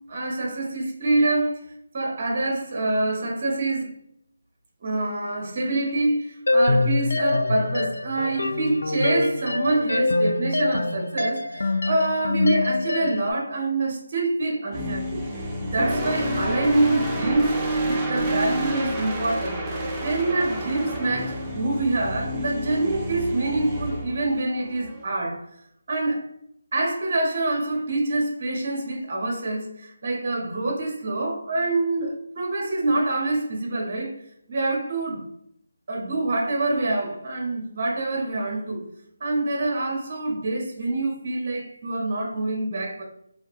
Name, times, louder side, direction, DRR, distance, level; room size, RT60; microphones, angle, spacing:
voice 1, 0.1-3.9 4.8-15.2 15.6-25.5 25.9-26.3 26.7-34.2 34.5-35.3 35.9-38.9 39.2-43.0, right 2 dB, 40° right, 0.7 m, -26 dB
sound 1, 6.5-13.3, left 2 dB, 85° left, 0.3 m, -24 dB
sound 2, 14.7-25.0, right 1 dB, 10° right, 0.4 m, -29 dB
2.6 x 2.3 x 2.3 m
figure-of-eight pair, 170°, 0 cm